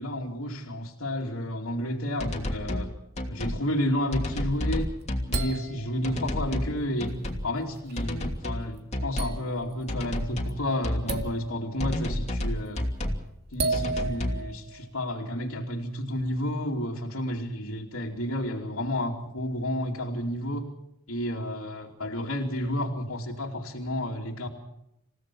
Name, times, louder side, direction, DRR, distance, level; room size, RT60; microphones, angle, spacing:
voice 1, 0.0-2.9 3.3-4.9 5.3-7.1 7.4-12.8 13.5-20.6 21.1-24.5, left 1 dB, 75° left, -3 dB, 2.8 m, -31 dB
sound 1, 2.2-2.9 3.2-3.6 4.1-5.6 6.0-6.7 7.0-7.5 8.0-8.6 8.9-9.4 9.9-10.6 10.8-11.3 11.8-13.2 13.7-14.4, left 1 dB, 30° left, 2.9 m, -30 dB
sound 2, 4.6-6.3 7.0-7.1 7.6-8.2 8.7-8.8 9.2-9.8 10.1-10.5 11.1-11.8 12.4-12.8 13.5-14.9, right 3 dB, 50° right, 2.2 m, -34 dB
28.5 x 16.5 x 6.2 m, 0.82 s
head